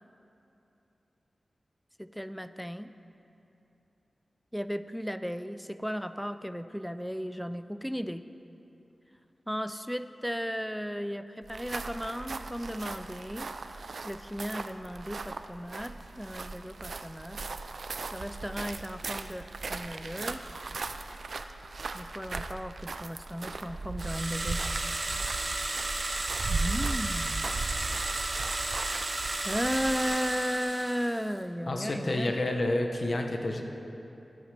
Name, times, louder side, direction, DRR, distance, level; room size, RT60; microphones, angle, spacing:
voice 1, 2.0-2.9 4.5-8.3 9.5-13.5 14.0-17.4 18.1-20.4 21.9-24.6 26.5-27.5 29.4-32.3, equal, ahead, 11 dB, 0.3 m, -35 dB
sound 1, 11.4-30.3, right 3 dB, 75° right, 0.4 m, -38 dB
sound 2, 24.0-31.3, right 2 dB, 50° right, 0.8 m, -33 dB
voice 2, 31.7-33.6, left 1 dB, 55° left, 3 dB, 0.9 m, -29 dB
11.0 x 10.0 x 3.3 m, 2.9 s
cardioid pair, 55°, 0 cm